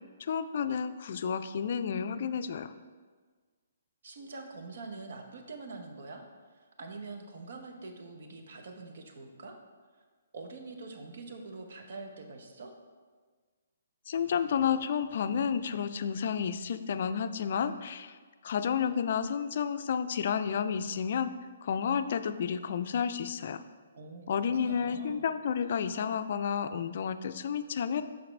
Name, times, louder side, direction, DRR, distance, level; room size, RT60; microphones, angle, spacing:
voice 1, 0.2-2.7 14.1-18.2 18.4-21.3 21.6-23.6 24.3-28.0, left 7 dB, 55° left, 11 dB, 0.3 m, -31 dB
voice 2, 4.0-9.6 9.9-10.0 10.3-12.7 23.9-25.2, right 3 dB, 60° right, 4 dB, 1.0 m, -45 dB
6.9 x 5.2 x 3.3 m, 1.5 s
figure-of-eight pair, 130°, 0 cm